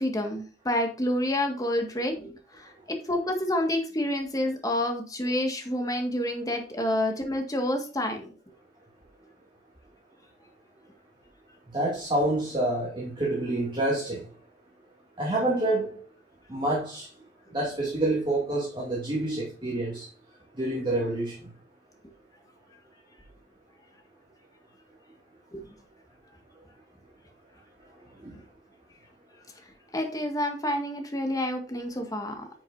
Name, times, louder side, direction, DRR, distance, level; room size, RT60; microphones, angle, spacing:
voice 1, 0.0-8.3 25.5-25.6 29.9-32.4, left 1 dB, 20° left, 1.8 m, -28 dB
voice 2, 11.7-14.2 15.2-16.0 16.5-17.1 17.5-20.1 20.6-21.3 28.2-28.4, right 1 dB, 25° right, 2.6 m, -27 dB
10.5 x 6.4 x 2.7 m
head